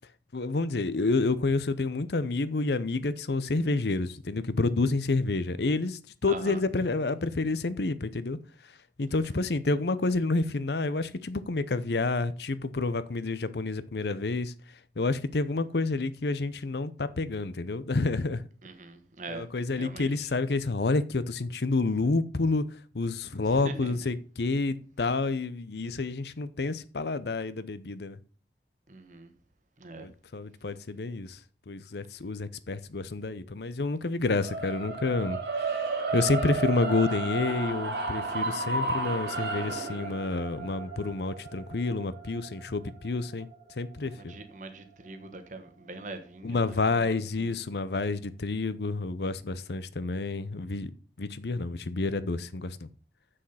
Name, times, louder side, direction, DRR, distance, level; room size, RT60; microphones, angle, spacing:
voice 1, 0.3-8.4 9.0-14.5 15.0-18.4 19.3-22.6 22.9-28.2 30.0-31.4 31.7-43.5 43.8-44.3 46.4-50.9 51.2-52.9, left 3 dB, 70° left, 0.7 m, -29 dB
voice 2, 6.3-6.6 9.1-9.4 18.6-19.4 19.8-20.3 23.4-24.1 28.9-29.3 29.8-30.1 44.0-47.6, right 2 dB, 45° right, 1.3 m, -43 dB
sound 1, 34.4-44.5, right 3 dB, 80° right, 2.1 m, -33 dB
7.5 x 6.6 x 5.7 m
head